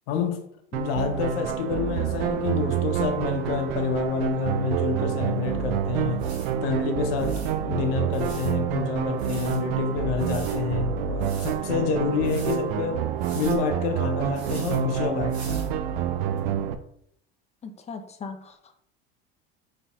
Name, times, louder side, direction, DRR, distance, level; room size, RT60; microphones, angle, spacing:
voice 1, 0.1-0.4 0.7-6.3 6.6-13.0 13.3-15.6, left 6 dB, 70° left, 0.8 m, -28 dB
sound 1, 0.7-16.8, right 9 dB, 70° right, 0.5 m, -28 dB
sound 2, 5.4-5.5 6.2-6.5 7.2-7.5 8.1-8.5 9.2-9.6 10.2-10.6 11.2-11.6 12.2-12.6 13.2-13.6 14.3-14.8 15.3-15.7 16.4-16.5, right 3 dB, 90° right, 1.3 m, -44 dB
voice 2, 17.6-18.7, left 4 dB, 20° left, 0.5 m, -39 dB
4.0 x 3.3 x 2.3 m
hypercardioid pair, 80°, 31 cm